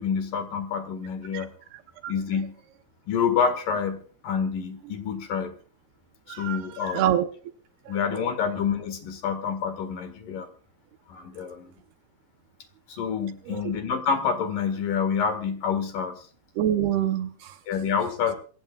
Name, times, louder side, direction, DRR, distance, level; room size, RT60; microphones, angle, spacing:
voice 1, 0.0-1.5 2.1-2.5 3.1-5.6 6.3-7.1 7.9-10.5 11.1-11.8 12.9-16.2 17.7-18.3, left 6 dB, 55° left, 8 dB, 2.8 m, -28 dB
voice 2, 6.3-7.3 7.9-8.3 11.4-11.6 13.5-13.7 16.6-17.6, right 11 dB, 75° right, 8 dB, 2.4 m, -27 dB
26.5 x 16.5 x 2.4 m, 0.41 s
omnidirectional pair, 5.4 m